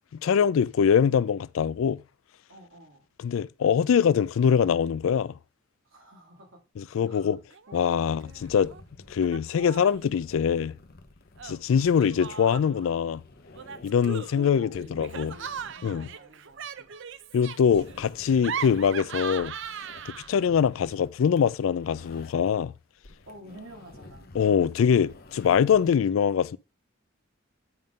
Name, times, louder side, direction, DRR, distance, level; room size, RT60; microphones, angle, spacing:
voice 1, 0.2-2.0 3.2-5.3 6.8-7.4 7.7-8.7 9.1-10.7 11.4-13.2 13.8-15.3 15.8-16.1 17.3-19.5 20.1-22.7 24.3-26.6, left 7 dB, 70° left, 0.3 m, -23 dB
voice 2, 2.5-3.1 5.8-7.3 7.7-7.9 14.0-16.9 18.4-18.6 23.3-24.3 25.7-26.0, equal, 85° right, 2.9 m, -49 dB
Laughter, 7.5-7.9 8.2-8.8 9.2-10.1 11.4-12.9 13.5-20.5, right 7 dB, 65° right, 0.5 m, -39 dB
sound 1, 8.3-22.6 22.9-25.9, left 2 dB, 50° left, 1.0 m, -51 dB
9.6 x 3.6 x 5.3 m
head